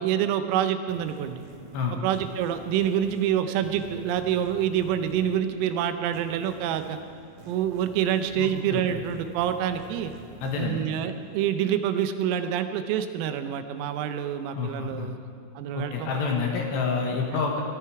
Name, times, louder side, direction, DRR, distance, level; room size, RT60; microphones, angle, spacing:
voice 1, 0.0-1.4 2.0-7.0 7.5-10.1 10.6-15.2 15.6-16.1, right 9 dB, 85° right, 9 dB, 3.5 m, -27 dB
sound 1, 0.9-12.1, right 3 dB, 55° right, 3.2 m, -48 dB
voice 2, 8.4-9.0 10.4-10.8 14.6-15.1 15.7-17.6, left 5 dB, 70° left, 1 dB, 2.8 m, -28 dB
18.0 x 13.5 x 4.7 m, 2.3 s
omnidirectional pair, 6.0 m